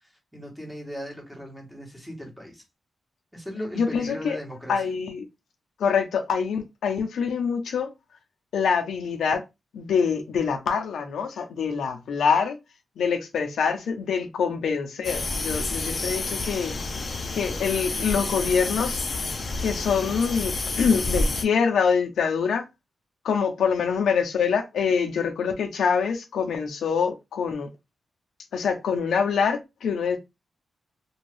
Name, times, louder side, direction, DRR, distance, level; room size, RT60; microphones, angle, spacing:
voice 1, 0.0-2.6 3.3-4.9, equal, ahead, 1.2 m, -38 dB
voice 2, 3.8-4.4 4.7-5.2 5.8-7.9 8.5-9.4 9.7-12.6 13.0-16.7 17.3-19.0 19.6-22.6 23.2-27.7 28.5-30.2, left 6 dB, 90° left, 0.6 m, -25 dB
sound 1, 15.0-21.4, left 2 dB, 45° left, 0.5 m, -29 dB
2.6 x 2.3 x 3.2 m
wide cardioid pair, 115°, 0 cm